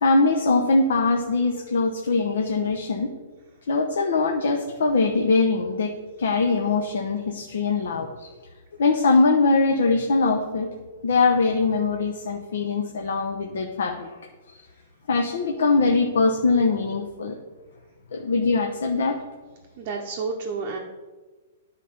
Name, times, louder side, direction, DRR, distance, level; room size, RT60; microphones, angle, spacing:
voice 1, 0.0-3.1 3.7-5.9 6.2-8.3 8.8-10.7 11.0-14.2 14.5-14.6 15.1-17.4 18.1-19.2, left 3 dB, 75° left, 2 dB, 0.9 m, -22 dB
voice 2, 19.8-20.8, right 4 dB, 25° right, 0 dB, 0.7 m, -30 dB
10.5 x 4.1 x 5.2 m, 1.3 s
hypercardioid pair, 175°, 0 cm